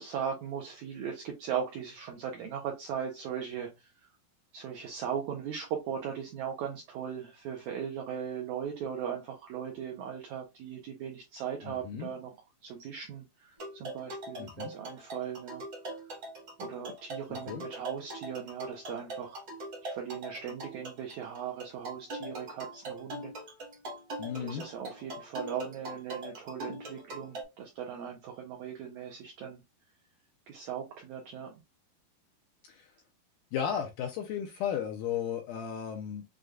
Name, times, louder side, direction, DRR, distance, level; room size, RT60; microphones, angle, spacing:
voice 1, 0.0-3.9 4.5-12.3 12.6-15.6 16.6-19.4 19.8-23.3 24.4-29.6 30.5-31.6, right 8 dB, 80° right, 1.7 m, -38 dB
voice 2, 11.6-12.1 14.4-14.8 17.5-17.7 24.2-24.7 32.7-32.9 33.5-36.2, left 8 dB, 80° left, 1.9 m, -35 dB
sound 1, 13.6-27.4, right 1 dB, 55° right, 1.3 m, -42 dB
6.4 x 2.3 x 2.3 m
omnidirectional pair, 4.1 m